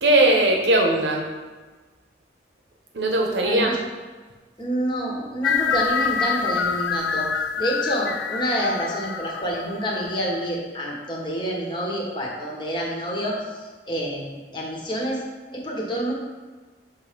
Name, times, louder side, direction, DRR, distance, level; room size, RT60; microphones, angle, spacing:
voice 1, 0.0-1.3 2.9-3.8, right 1 dB, 80° right, 1 dB, 1.1 m, -19 dB
voice 2, 3.4-3.8 4.6-7.3 7.6-15.2 15.5-16.1, equal, 25° left, -2 dB, 1.3 m, -28 dB
sound 1, 5.4-10.1, left 6 dB, 85° left, 0.4 m, -26 dB
6.8 x 3.3 x 5.1 m, 1.3 s
head